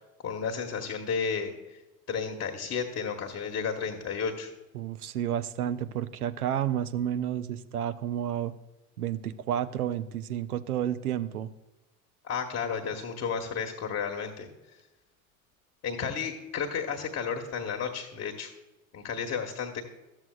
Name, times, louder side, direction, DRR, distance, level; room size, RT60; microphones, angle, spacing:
voice 1, 0.2-1.8 2.1-4.5 12.2-14.5 15.8-18.5 18.9-19.8, left 6 dB, 35° left, 3 dB, 1.0 m, -32 dB
voice 2, 4.7-8.5 9.0-11.5, right 10 dB, 85° right, 13 dB, 0.5 m, -31 dB
13.0 x 7.3 x 2.3 m, 1.0 s
figure-of-eight pair, 75°, 43 cm